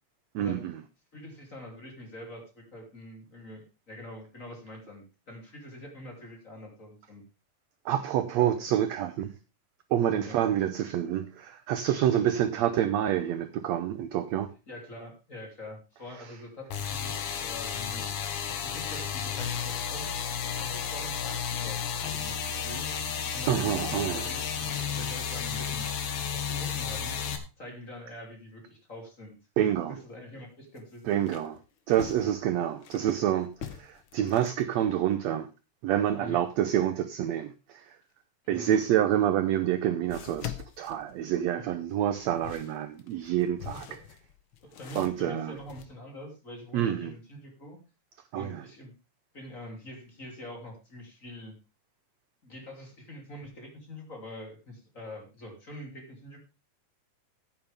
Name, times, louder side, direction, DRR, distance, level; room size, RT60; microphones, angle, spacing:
voice 1, 0.3-0.8 7.8-9.3 9.9-14.5 23.5-24.2 29.6-29.9 31.1-31.6 31.9-35.5 35.8-38.0 38.5-43.8 44.9-45.6 46.7-47.1 48.3-48.6, right 11 dB, 75° right, 1.6 m, -27 dB
voice 2, 1.1-7.2 8.3-8.7 10.2-10.4 12.1-12.2 14.7-18.0 18.5-20.2 20.6-22.9 23.3-25.8 26.3-27.2 27.6-31.2 36.2-36.4 38.4-38.7 41.5-41.7 43.7-44.0 44.7-47.8 48.3-48.9 49.3-51.6 52.4-56.4, left 1 dB, 25° left, 3.0 m, -45 dB
sound 1, 16.7-27.4, left 7 dB, 70° left, 2.9 m, -32 dB
sound 2, 29.6-29.7 30.1-30.2 30.7-33.1 33.5-34.6 38.9-39.0 40.1-41.7 42.1-45.8, left 10 dB, 85° left, 1.1 m, -44 dB
14.0 x 9.3 x 3.5 m
omnidirectional pair, 3.8 m